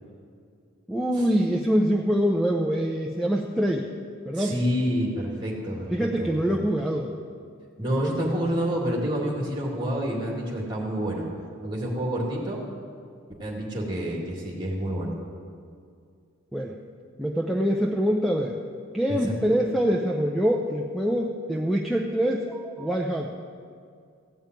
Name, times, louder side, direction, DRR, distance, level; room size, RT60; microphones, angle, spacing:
voice 1, 0.9-3.9 4.3-4.6 5.9-7.1 8.0-8.3 16.5-16.8 17.2-18.6 18.9-23.3, equal, ahead, 0 dB, 0.5 m, -25 dB
voice 2, 4.3-6.6 7.8-11.3 11.6-12.6 13.4-15.2 19.1-19.4, equal, 20° right, -2 dB, 2.3 m, -28 dB
15.0 x 5.5 x 9.0 m, 2.3 s
head